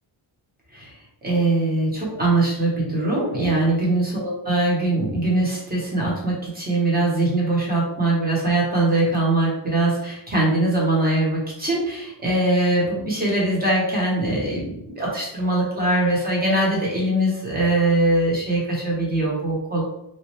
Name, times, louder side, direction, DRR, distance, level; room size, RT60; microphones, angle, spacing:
voice 1, 1.2-19.8, right 2 dB, 20° right, -5 dB, 1.0 m, -22 dB
3.1 x 2.4 x 3.0 m, 0.84 s
wide cardioid pair, 145°, 47 cm